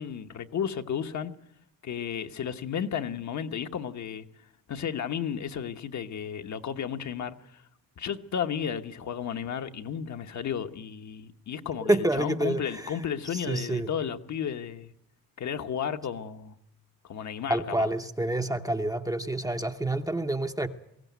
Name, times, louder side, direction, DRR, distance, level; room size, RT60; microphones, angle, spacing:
voice 1, 0.0-1.3 1.8-4.3 4.7-7.6 8.0-14.9 15.4-16.5 17.0-17.9, left 8 dB, 55° left, 1.1 m, -33 dB
voice 2, 11.9-13.0 13.3-13.9 17.5-20.7, right 1 dB, 10° right, 0.8 m, -28 dB
21.5 x 16.5 x 9.3 m
wide cardioid pair, 160°, 35 cm